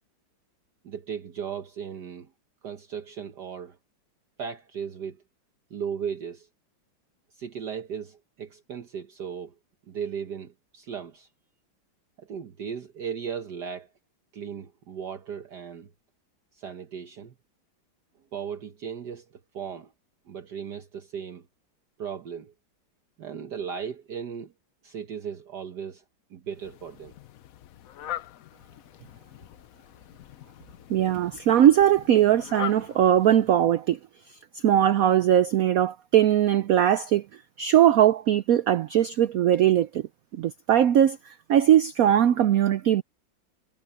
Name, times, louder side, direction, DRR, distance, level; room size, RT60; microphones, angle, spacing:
voice 1, 0.8-2.3 2.6-3.8 4.4-5.2 5.7-6.5 7.3-9.5 9.9-11.3 12.2-13.9 14.3-15.9 16.5-17.3 18.3-19.9 20.3-21.5 22.0-22.5 23.2-24.5 24.8-26.0 26.3-27.2, right 7 dB, 60° right, 1.6 m, -36 dB
Fowl, 26.5-33.9, left 12 dB, 70° left, 0.8 m, -42 dB
voice 2, 30.9-34.0 34.6-37.3 37.6-40.0 40.4-43.0, right 11 dB, 85° right, 0.7 m, -20 dB
omnidirectional pair, 2.2 m